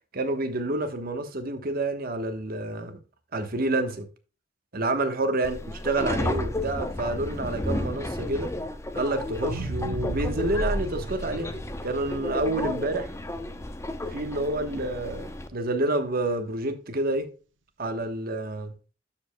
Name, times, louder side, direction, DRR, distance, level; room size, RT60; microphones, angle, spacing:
voice 1, 0.1-3.0 3.3-4.1 4.7-5.6 5.8-8.5 8.9-11.5 11.8-13.1 14.1-17.3 17.8-18.7, right 2 dB, 50° right, 1.2 m, -28 dB
Subway metro underground, 5.4-15.5, left 1 dB, 15° left, 0.7 m, -33 dB
sound 1, 9.3-13.6 14.1-14.2, right 1 dB, 80° right, 1.0 m, -34 dB
12.0 x 5.1 x 2.2 m
head